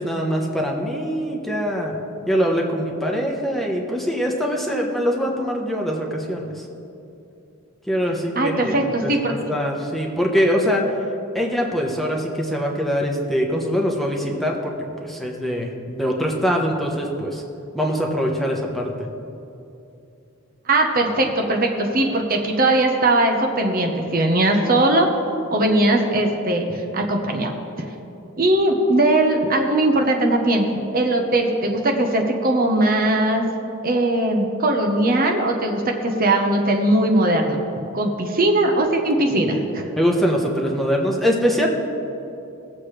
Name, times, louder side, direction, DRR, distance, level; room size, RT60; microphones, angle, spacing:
voice 1, 0.0-2.0 2.3-6.6 7.9-8.7 9.0-10.9 11.3-14.7 15.0-17.4 17.7-18.9 40.0-41.7, equal, ahead, -1 dB, 1.1 m, -23 dB
voice 2, 8.4-9.3 20.7-25.1 25.5-27.5 28.4-30.7 30.9-33.5 33.8-37.6 37.9-39.8, right 1 dB, 45° right, 2 dB, 1.0 m, -19 dB
19.0 x 7.5 x 3.3 m, 2.8 s
head